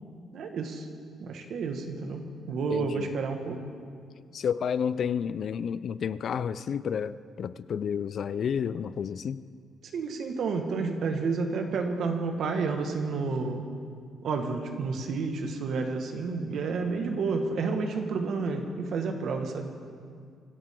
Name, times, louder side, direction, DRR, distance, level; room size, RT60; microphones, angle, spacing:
voice 1, 0.3-0.9 1.2-3.6 9.9-13.7 14.2-19.7, right 4 dB, 70° right, 1.7 m, -30 dB
voice 2, 2.7-3.1 4.3-9.4, left 7 dB, 60° left, 0.5 m, -31 dB
25.0 x 13.0 x 3.8 m
cardioid pair, 90°, 0 cm